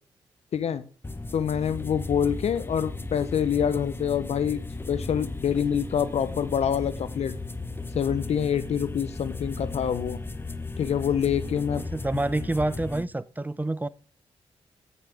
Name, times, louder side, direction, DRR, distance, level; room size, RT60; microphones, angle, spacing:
voice 1, 0.5-0.8 1.3-4.6 4.9-7.3 7.9-10.2 10.8-11.8, left 8 dB, 70° left, 0.7 m, -26 dB
sound 1, 1.0-13.0, left 3 dB, 20° left, 0.9 m, -36 dB
voice 2, 11.7-13.9, right 2 dB, 15° right, 0.6 m, -28 dB
9.1 x 8.3 x 3.4 m
supercardioid pair, 55°, 11 cm